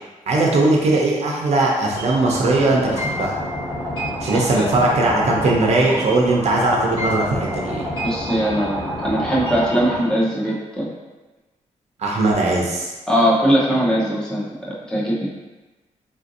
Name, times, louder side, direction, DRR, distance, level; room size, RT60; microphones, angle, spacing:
voice 1, 0.3-3.4 4.2-7.9 12.0-12.9, right 2 dB, 55° right, -2 dB, 0.6 m, -19 dB
sound 1, 2.0-10.0, equal, 40° left, 1.3 m, -28 dB
voice 2, 8.0-10.9 13.1-15.3, equal, 5° left, -6 dB, 0.7 m, -20 dB
3.8 x 2.5 x 2.6 m, 1.2 s
wide cardioid pair, 135°, 13 cm